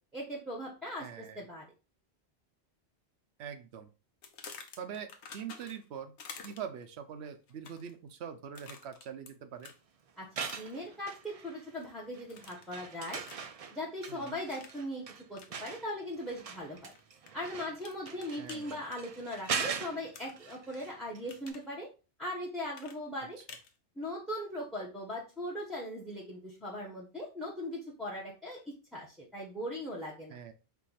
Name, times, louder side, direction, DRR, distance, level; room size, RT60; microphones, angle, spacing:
voice 1, 0.1-1.7 10.2-13.2 13.7-16.9 17.3-21.9 22.2-23.4 24.0-30.4, left 1 dB, ahead, -2 dB, 0.9 m, -39 dB
voice 2, 1.0-1.4 3.4-3.9 4.8-6.1 6.4-9.7 14.1-14.4 18.4-18.8 30.3-30.5, right 8 dB, 75° right, 9 dB, 0.9 m, -43 dB
sound 1, 4.2-5.9 6.2-6.8 7.5-7.9 8.6-9.3 9.6-9.8 10.5-10.9 11.2-11.9 12.3-12.8 13.2-13.6 14.5-14.8 15.3-15.5 16.8-17.3 17.8-18.6 20.1-20.8 21.1-21.7 22.7-23.7, left 5 dB, 85° left, 1.1 m, -49 dB
sound 2, 10.2-11.8 12.1-21.2 21.5-21.6, right 6 dB, 50° right, 0.4 m, -41 dB
4.6 x 2.6 x 4.0 m, 0.32 s
omnidirectional pair, 1.1 m